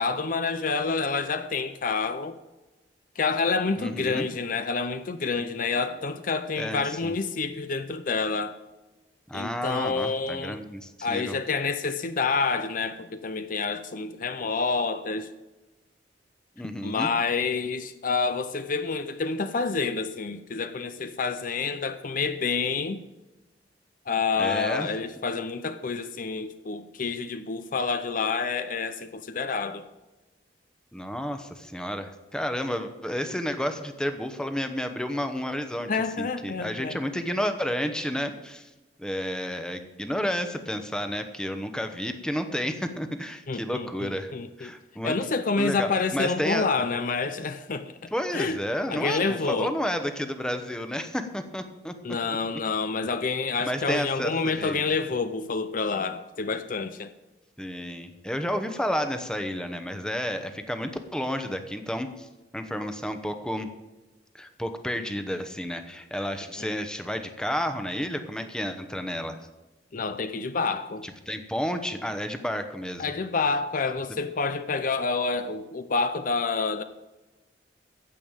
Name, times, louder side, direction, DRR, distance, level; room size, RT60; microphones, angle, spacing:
voice 1, 0.0-2.4 3.2-8.6 9.3-10.6 11.0-15.3 16.8-23.0 24.1-29.9 35.9-37.0 43.5-44.7 45.0-48.6 48.9-49.7 52.0-57.1 66.6-66.7 69.9-71.0 73.0-76.8, left 4 dB, 50° left, 0.6 m, -28 dB
voice 2, 3.8-4.3 6.6-7.1 9.3-11.4 16.6-17.1 24.4-24.9 30.9-35.9 36.2-38.7 39.0-44.3 44.6-45.2 45.6-46.7 48.1-52.0 53.6-54.8 57.6-62.3 62.5-63.7 64.3-69.4 71.0-73.1, equal, 5° left, 1.0 m, -31 dB
15.5 x 5.4 x 8.9 m
head